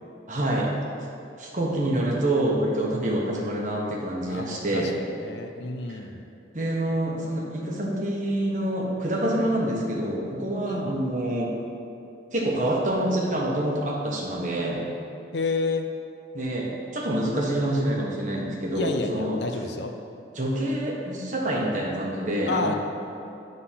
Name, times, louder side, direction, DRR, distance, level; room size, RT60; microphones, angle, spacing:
voice 1, 0.3-0.7 1.4-4.9 5.9-6.0 6.5-11.5 12.3-14.8 16.3-19.4 20.3-22.8, right 1 dB, 40° right, -3 dB, 1.3 m, -26 dB
voice 2, 4.3-6.2 10.7-11.0 15.3-15.9 18.7-19.9 22.5-22.7, left 3 dB, 70° left, 5 dB, 0.6 m, -30 dB
9.9 x 3.9 x 5.7 m, 2.7 s
head